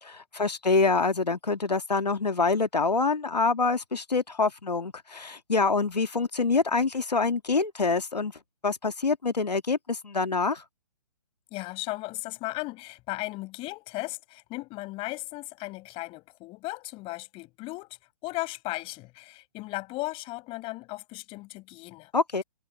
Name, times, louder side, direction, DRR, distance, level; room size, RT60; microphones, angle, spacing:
voice 1, 0.0-10.6 22.1-22.4, left 4 dB, 90° left, 2.1 m, -26 dB
voice 2, 11.5-18.0 18.2-22.1, left 21 dB, 25° left, 6.5 m, -36 dB
figure-of-eight pair, 130°, 20 cm